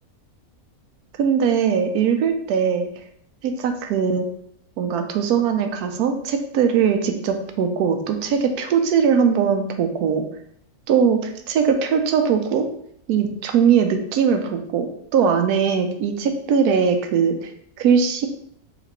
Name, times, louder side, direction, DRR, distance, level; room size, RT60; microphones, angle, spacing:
voice 1, 1.2-2.9 3.4-4.3 4.8-10.2 10.9-12.7 13.1-14.9 15.1-17.5 17.8-18.3, right 7 dB, 85° right, 6 dB, 1.1 m, -20 dB
5.1 x 3.0 x 3.0 m, 0.69 s
omnidirectional pair, 1.6 m